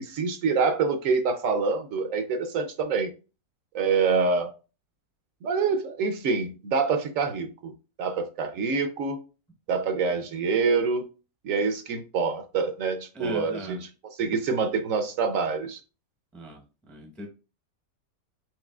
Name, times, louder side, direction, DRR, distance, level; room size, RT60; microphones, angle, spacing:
voice 1, 0.0-3.1 3.7-4.5 5.4-7.7 8.0-9.2 9.7-11.1 11.4-15.8, right 5 dB, 70° right, 0.9 m, -26 dB
voice 2, 13.1-13.8 16.3-17.3, equal, ahead, 0.6 m, -39 dB
4.7 x 3.7 x 2.3 m
omnidirectional pair, 1.5 m